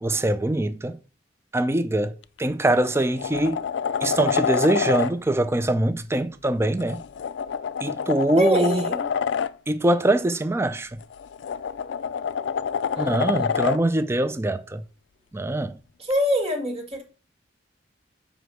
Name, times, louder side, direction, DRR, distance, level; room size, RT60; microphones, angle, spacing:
voice 1, 0.0-1.0 1.5-2.1 2.4-3.6 4.0-7.0 7.8-8.8 9.7-10.9 13.0-14.8 15.3-15.7, right 1 dB, 15° right, 0.4 m, -23 dB
sound 1, 2.2-2.4 2.8-5.1 6.8-9.5 11.0-13.8 16.1-16.2, left 7 dB, 75° left, 0.4 m, -27 dB
voice 2, 8.4-9.1 12.9-13.5 16.0-17.0, equal, 35° right, 2.0 m, -25 dB
5.0 x 5.0 x 6.3 m
head